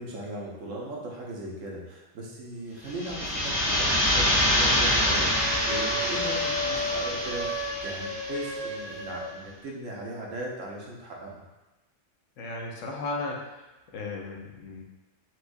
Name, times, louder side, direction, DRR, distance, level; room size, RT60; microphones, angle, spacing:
voice 1, 0.0-11.3, right 1 dB, 90° right, -2 dB, 1.1 m, -38 dB
sound 1, 2.9-8.5, left 1 dB, 25° left, 0.4 m, -26 dB
sound 2, 4.3-9.3, left 1 dB, 70° right, 1.8 m, -34 dB
voice 2, 12.4-13.6 13.9-14.8, left 3 dB, 80° left, 0 dB, 0.9 m, -35 dB
4.5 x 2.2 x 2.5 m, 1.1 s
omnidirectional pair, 1.3 m